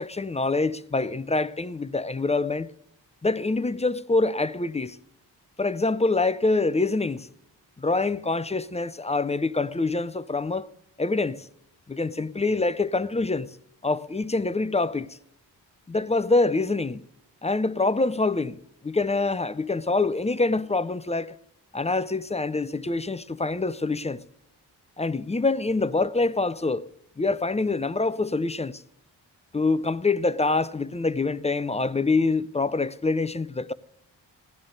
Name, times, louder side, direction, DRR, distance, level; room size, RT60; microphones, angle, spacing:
voice 1, 0.0-2.7 3.2-5.0 5.6-7.3 7.8-10.7 11.0-11.5 11.9-13.5 13.8-15.1 15.9-17.0 17.4-18.6 18.8-21.4 21.7-24.2 25.0-26.9 27.2-28.8 29.5-33.7, left 3 dB, 15° left, 0.4 m, -25 dB
16.5 x 11.5 x 3.8 m
wide cardioid pair, 100°, 44 cm